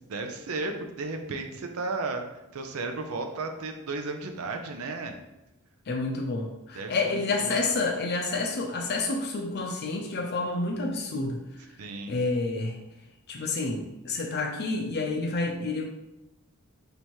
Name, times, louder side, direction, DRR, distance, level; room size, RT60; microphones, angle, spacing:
voice 1, 0.0-2.2 2.5-5.2 6.7-7.6 11.8-12.1, right 3 dB, 85° right, 5 dB, 0.5 m, -34 dB
voice 2, 5.9-11.4 12.1-12.8 13.3-15.8, left 3 dB, 50° left, 1 dB, 0.5 m, -29 dB
3.3 x 3.0 x 4.4 m, 0.94 s
head